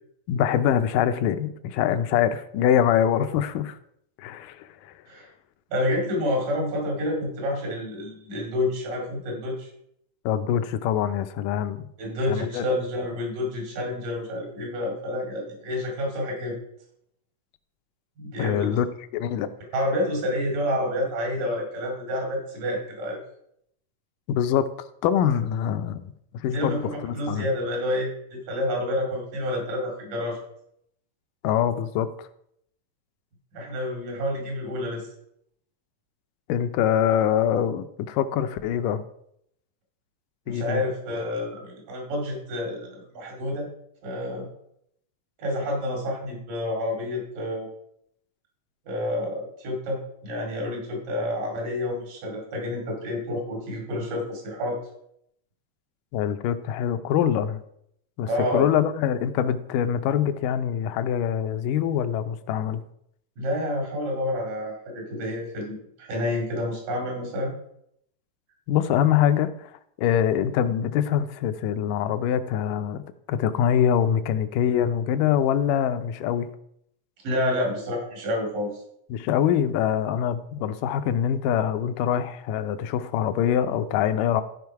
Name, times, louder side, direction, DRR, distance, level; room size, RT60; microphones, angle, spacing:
voice 1, 0.3-3.8 4.2-4.9 10.3-11.9 12.3-12.6 18.4-18.9 19.1-19.5 24.3-24.7 25.0-27.5 31.4-32.3 36.5-39.0 40.5-40.8 56.1-57.6 58.2-62.8 68.7-69.7 70.0-73.0 73.3-76.5 79.1-84.4, left 9 dB, 80° left, 2.2 m, -24 dB
voice 2, 5.7-9.7 12.0-16.6 18.2-18.8 19.7-23.2 26.5-30.4 33.5-35.1 40.5-43.7 44.0-44.5 45.4-47.7 48.9-54.8 58.3-58.7 63.4-67.5 77.2-78.8, left 1 dB, 80° right, 4.0 m, -29 dB
14.0 x 5.1 x 4.7 m
omnidirectional pair, 3.8 m